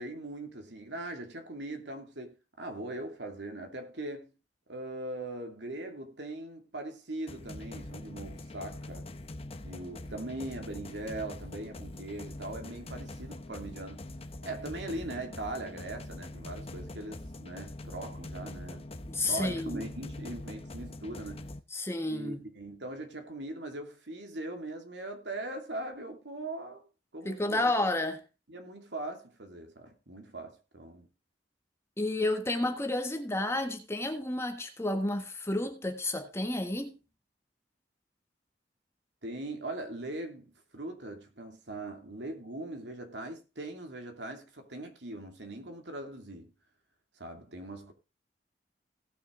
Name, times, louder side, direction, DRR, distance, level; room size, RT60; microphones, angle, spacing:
voice 1, 0.0-4.3 4.7-9.1 9.6-14.1 14.4-18.8 19.3-21.5 22.1-26.8 27.1-27.7 28.5-31.1 39.2-46.5 47.2-47.9, right 2 dB, 80° right, 2.6 m, -40 dB
sound 1, 7.3-21.6, left 1 dB, 35° left, 0.9 m, -43 dB
voice 2, 19.1-19.9 21.7-22.5 27.2-28.2 32.0-36.9, left 2 dB, 15° left, 1.5 m, -31 dB
17.5 x 6.5 x 3.9 m
head